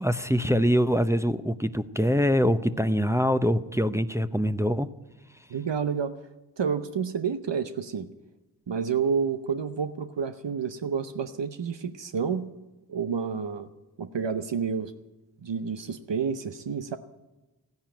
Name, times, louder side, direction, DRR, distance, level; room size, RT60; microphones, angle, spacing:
voice 1, 0.0-4.9, equal, 5° right, 10 dB, 0.7 m, -24 dB
voice 2, 5.5-6.2 6.6-8.1 8.7-12.5 12.9-13.7 14.0-14.9 15.4-17.0, right 6 dB, 80° right, 9 dB, 0.8 m, -29 dB
14.5 x 10.5 x 8.9 m, 1.1 s
wide cardioid pair, 40°, 43 cm